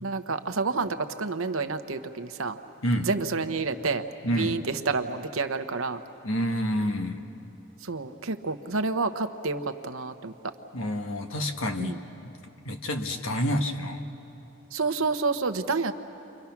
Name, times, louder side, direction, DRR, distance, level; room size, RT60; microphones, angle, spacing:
voice 1, 0.0-2.6 3.1-6.0 7.8-10.3 11.8-12.0 14.7-15.9, right 4 dB, 70° right, 9 dB, 0.9 m, -29 dB
voice 2, 4.2-4.6 6.2-7.2 10.7-12.0 12.2-12.4 12.6-14.0, equal, 65° left, 5 dB, 1.4 m, -28 dB
30.0 x 24.0 x 6.0 m, 2.9 s
head